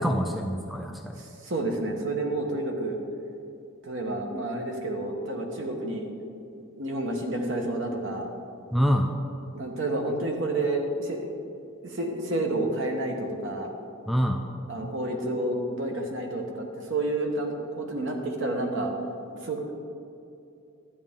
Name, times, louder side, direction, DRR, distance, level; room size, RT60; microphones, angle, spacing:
voice 1, 0.0-1.2 8.7-9.1 14.1-14.4, equal, ahead, 3 dB, 0.4 m, -25 dB
voice 2, 1.2-3.0 3.8-6.1 6.6-8.3 9.5-11.3 11.8-13.7 14.7-18.9 19.4-19.7, right 2 dB, 60° right, 2 dB, 1.2 m, -30 dB
11.5 x 8.2 x 3.7 m, 2.5 s
head